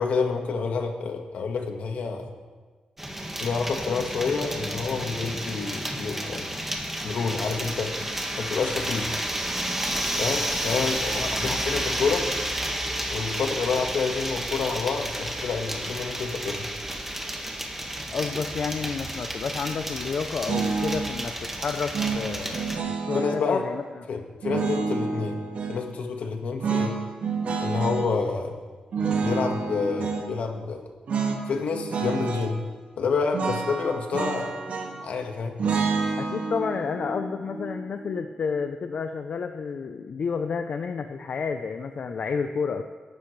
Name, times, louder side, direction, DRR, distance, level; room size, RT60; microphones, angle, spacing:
voice 1, 0.0-2.3 3.4-6.5 7.0-8.0 8.4-9.1 10.2-12.3 13.1-16.7 23.1-23.7 24.1-25.4 25.7-27.0 27.6-28.6 29.2-30.8 31.5-32.6 33.0-34.6 35.0-35.6, left 5 dB, 80° left, 4 dB, 1.7 m, -28 dB
sound 1, 3.0-22.8, right 1 dB, 10° right, 1.7 m, -31 dB
voice 2, 18.1-23.8 24.5-24.6 36.2-42.8, left 5 dB, 60° left, 7 dB, 0.6 m, -30 dB
sound 2, 20.5-21.1 21.9-23.4 24.4-25.8 26.6-28.1 28.9-30.3 31.1-31.4 31.7-32.5 33.3-35.1 35.6-38.7, right 5 dB, 75° right, 1.9 m, -29 dB
23.0 x 12.0 x 3.3 m, 1.4 s
cardioid pair, 95°, 2 cm